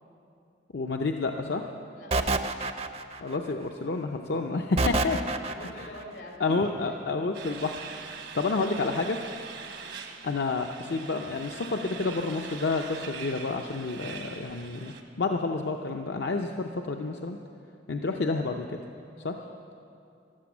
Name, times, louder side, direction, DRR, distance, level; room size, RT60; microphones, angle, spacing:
voice 1, 0.7-1.6 3.2-5.2 5.8-5.9 6.4-9.2 10.2-17.4 17.9-18.7 19.2-19.3, left 3 dB, 65° left, 3 dB, 0.6 m, -29 dB
voice 2, 1.9-2.7 5.1-7.0 9.8-10.0 19.4-19.6, left 1 dB, 90° left, 1 dB, 2.6 m, -46 dB
sound 1, 2.1-3.4 4.8-5.9, right 3 dB, 35° right, 0.5 m, -27 dB
sound 2, 7.3-15.0, right 5 dB, 75° right, 1.2 m, -42 dB
14.0 x 12.0 x 7.2 m, 2.6 s
head